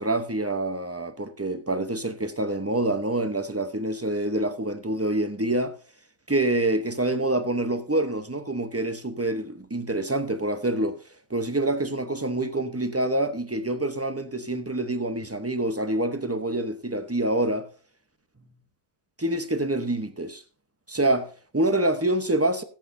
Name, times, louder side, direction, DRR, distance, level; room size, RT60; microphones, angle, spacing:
voice 1, 0.0-5.7 6.3-11.0 11.3-17.7 19.2-20.4 20.9-22.6, right 1 dB, 15° right, 0.7 m, -26 dB
18.0 x 8.1 x 2.6 m
omnidirectional pair, 1.4 m